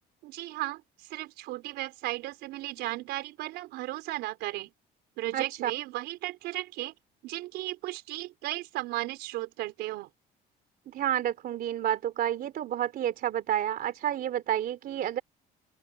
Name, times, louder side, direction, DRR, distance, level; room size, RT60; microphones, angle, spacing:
voice 1, 0.2-4.7 5.2-6.9 7.2-10.1, right 17 dB, 90° right, 4.8 m, -35 dB
voice 2, 5.3-5.7 10.9-15.2, right 11 dB, 60° right, 3.1 m, -30 dB
open air
cardioid pair, 110°, 17 cm